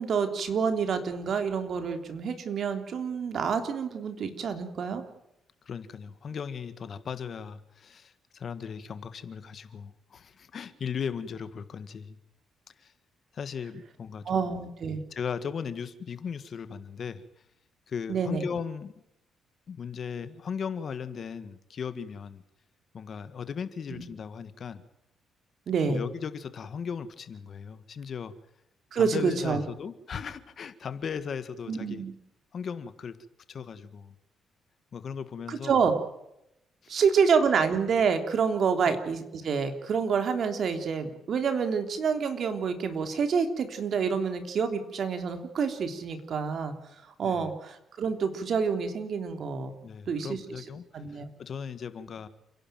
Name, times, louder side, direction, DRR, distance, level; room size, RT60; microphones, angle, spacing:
voice 1, 0.0-5.0 14.2-15.0 18.1-18.4 23.9-24.0 25.7-26.0 28.9-29.6 31.7-32.1 35.5-35.9 36.9-46.7 47.2-49.7 50.1-50.4 50.9-51.3, right 6 dB, 60° right, 7 dB, 3.3 m, -27 dB
voice 2, 5.7-12.2 12.8-12.9 13.3-14.5 15.1-17.2 17.9-18.9 19.7-22.4 22.9-24.8 25.9-28.3 29.0-32.0 32.5-33.2 33.5-34.1 34.9-35.7 36.8-37.0 47.2-47.5 49.8-52.3, left 6 dB, 50° left, 13 dB, 1.7 m, -37 dB
29.5 x 11.5 x 9.2 m, 0.83 s
cardioid pair, 90°, 0 cm